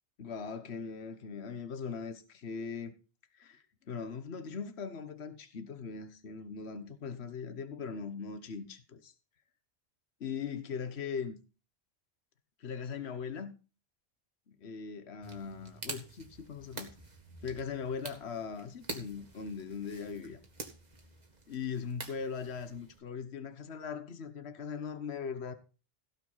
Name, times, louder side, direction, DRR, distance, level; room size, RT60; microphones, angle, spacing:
voice 1, 0.2-2.9 3.3-9.1 10.2-11.4 12.6-13.5 14.5-16.9 17.4-20.4 21.5-25.5, left 6 dB, 65° left, 1.4 m, -40 dB
sound 1, 15.2-23.0, right 3 dB, 40° right, 2.0 m, -47 dB
16.5 x 5.8 x 5.6 m
omnidirectional pair, 1.2 m